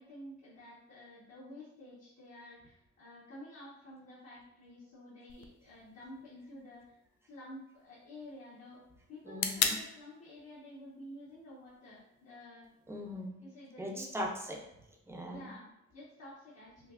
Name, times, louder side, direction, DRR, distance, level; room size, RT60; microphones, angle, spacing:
voice 1, 0.0-6.9 7.3-8.8 9.1-12.7 13.4-14.1 15.2-16.9, left 1 dB, 55° left, -9 dB, 1.4 m, -51 dB
sound 1, 5.3-13.3, left 7 dB, 70° left, 0.5 m, -41 dB
voice 2, 9.3-9.8 12.9-13.4 13.8-14.6 15.1-15.5, equal, 10° right, -1 dB, 0.7 m, -39 dB
5.4 x 2.0 x 2.5 m, 0.83 s
cardioid pair, 90°, 30 cm